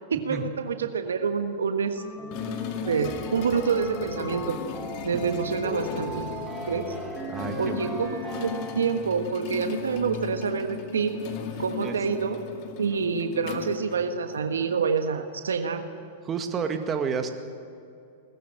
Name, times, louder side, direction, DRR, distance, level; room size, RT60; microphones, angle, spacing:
voice 1, 0.1-2.0 2.9-4.6 5.0-6.3 6.6-6.9 7.6-11.1 11.6-12.4 12.8-15.8, right 6 dB, 85° right, 7 dB, 1.4 m, -27 dB
sound 1, 2.0-9.3, left 1 dB, 10° left, 4.3 m, -37 dB
sound 2, 2.3-14.6, left 6 dB, 50° left, 2.0 m, -37 dB
voice 2, 7.3-7.8 11.8-12.0 16.2-17.3, right 6 dB, 25° right, 6 dB, 2.0 m, -30 dB
19.5 x 15.0 x 8.8 m, 2.6 s
hypercardioid pair, 110°, 0 cm